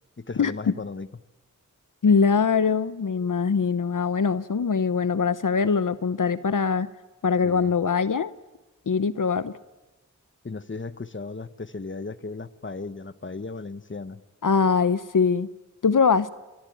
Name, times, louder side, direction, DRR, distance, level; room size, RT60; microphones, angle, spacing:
voice 1, 0.2-1.1 7.4-7.7 10.4-14.2, left 3 dB, 40° left, 13 dB, 1.1 m, -36 dB
voice 2, 2.0-6.9 7.2-8.3 8.9-9.5 14.4-15.5 15.8-16.3, left 5 dB, 80° left, 14 dB, 0.8 m, -22 dB
27.0 x 22.5 x 9.2 m, 1.1 s
wide cardioid pair, 65°, 31 cm